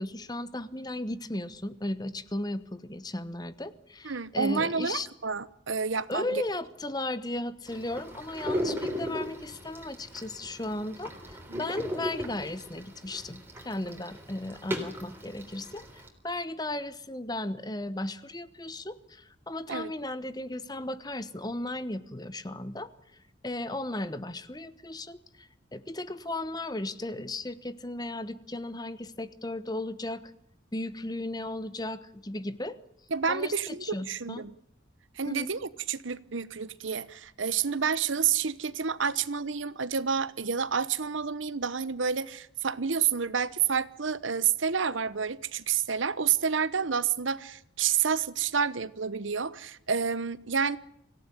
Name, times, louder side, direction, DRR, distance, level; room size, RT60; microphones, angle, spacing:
voice 1, 0.0-5.1 6.1-22.9 23.4-30.2 30.7-32.8 33.3-34.5 35.3-35.5, left 1 dB, 20° left, 1.0 m, -36 dB
voice 2, 4.0-6.4 11.5-11.6 19.7-19.9 33.1-34.5 35.2-50.8, right 6 dB, 75° right, 1.0 m, -29 dB
sound 1, 7.7-16.1, equal, 10° right, 3.7 m, -37 dB
25.0 x 16.5 x 10.0 m
head